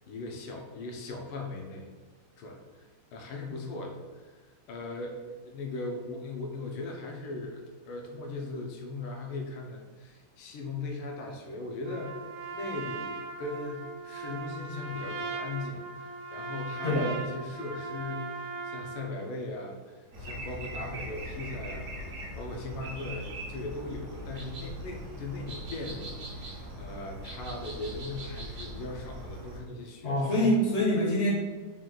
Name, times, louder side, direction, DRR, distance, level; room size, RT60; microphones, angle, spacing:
voice 1, 0.1-1.9 2.4-4.3 4.7-30.3, left 2 dB, 85° left, 1 dB, 1.6 m, -39 dB
Trumpet, 11.8-19.1, right 4 dB, 80° right, 1.5 m, -39 dB
sound 1, 20.1-29.6, right 1 dB, 60° right, 0.8 m, -40 dB
voice 2, 30.0-31.3, equal, 50° left, -4 dB, 0.9 m, -25 dB
4.6 x 2.5 x 3.8 m, 1.4 s
omnidirectional pair, 2.3 m